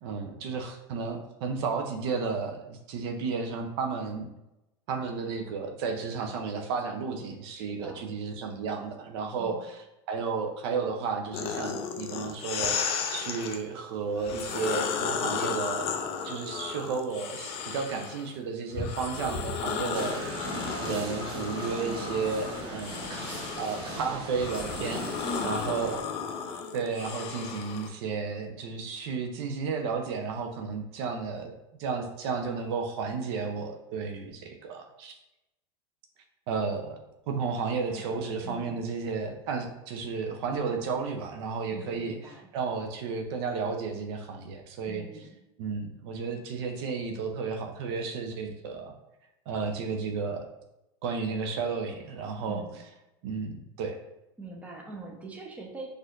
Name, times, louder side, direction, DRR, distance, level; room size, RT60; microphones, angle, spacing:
voice 1, 0.0-4.3 4.9-15.9 16.2-25.0 25.4-26.0 26.7-35.2 36.5-37.0 37.3-45.1 45.6-48.9 49.5-50.5 51.0-52.6 53.2-54.0, right 5 dB, 65° right, 4 dB, 0.5 m, -33 dB
voice 2, 7.6-8.0 9.4-9.6 25.2-26.0 37.9-38.8 41.7-42.4 44.9-45.3 52.5-52.8 54.4-56.0, right 2 dB, 10° right, 0 dB, 0.7 m, -42 dB
sound 1, 11.3-13.6 14.2-18.3 18.7-27.9, left 6 dB, 45° left, 0.4 m, -34 dB
sound 2, 19.9-26.0, right 1 dB, 35° right, 1.0 m, -38 dB
4.2 x 2.5 x 2.4 m, 0.91 s
hypercardioid pair, 105°, 14 cm